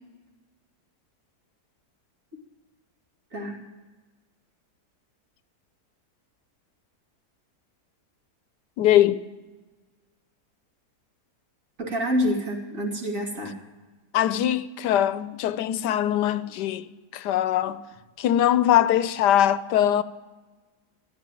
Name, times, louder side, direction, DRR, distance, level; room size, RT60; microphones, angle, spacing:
voice 1, 8.8-9.2 14.1-17.8 18.2-20.0, left 11 dB, 85° left, 1.3 m, -22 dB
voice 2, 11.8-13.6, equal, 50° right, 2.8 m, -27 dB
15.0 x 10.5 x 9.0 m
omnidirectional pair, 1.8 m